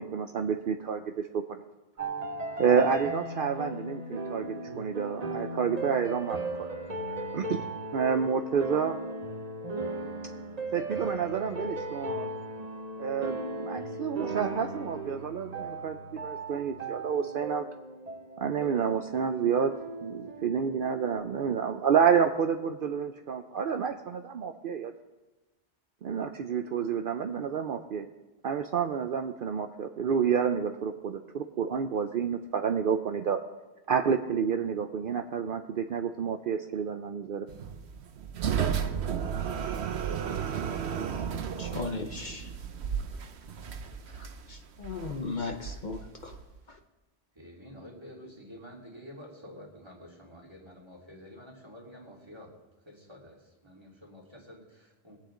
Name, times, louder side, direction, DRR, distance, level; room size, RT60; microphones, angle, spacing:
voice 1, 0.0-1.4 2.6-6.7 7.3-7.6 7.9-9.0 10.7-12.3 13.0-17.7 18.4-19.7 20.0-24.9 26.0-28.1 28.4-33.4 33.9-37.5, right 7 dB, 60° right, 6 dB, 0.8 m, -29 dB
sound 1, 2.0-21.2, right 2 dB, 40° right, 1.1 m, -37 dB
sound 2, 37.5-46.6, right 7 dB, 90° right, 1.1 m, -33 dB
voice 2, 41.6-42.5 43.1-43.2 44.0-46.4 46.7-46.8, left 4 dB, 50° left, 5 dB, 0.9 m, -37 dB
voice 3, 47.3-52.5 52.9-55.2, equal, 25° right, -1 dB, 2.6 m, -49 dB
21.5 x 8.7 x 3.8 m, 1.1 s
omnidirectional pair, 1.1 m